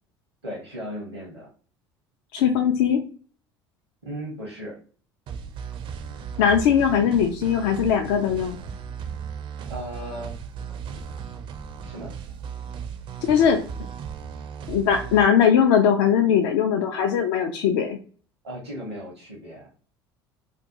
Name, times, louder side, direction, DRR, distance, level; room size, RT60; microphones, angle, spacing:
voice 1, 0.4-1.5 4.0-4.8 9.7-10.3 10.9-11.0 11.8-12.1 18.4-19.7, equal, 85° right, -3 dB, 0.8 m, -36 dB
voice 2, 2.3-3.0 6.4-8.6 13.3-13.6 14.7-18.0, left 8 dB, 55° left, 4 dB, 0.4 m, -20 dB
sound 1, 5.3-15.3, right 7 dB, 40° right, 0.4 m, -36 dB
2.5 x 2.2 x 2.7 m, 0.41 s
figure-of-eight pair, 65°, 13 cm